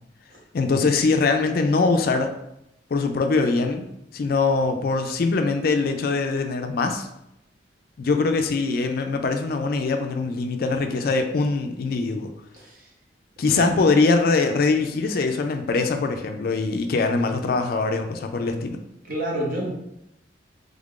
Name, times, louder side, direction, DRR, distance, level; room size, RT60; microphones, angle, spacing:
voice 1, 0.5-2.3 2.9-3.8 4.1-7.1 8.0-12.3 13.4-18.8, left 3 dB, 55° left, 6 dB, 0.4 m, -22 dB
voice 2, 12.5-12.9 13.4-13.7 19.1-19.7, equal, 50° right, -1 dB, 0.9 m, -28 dB
3.5 x 2.4 x 3.6 m, 0.81 s
head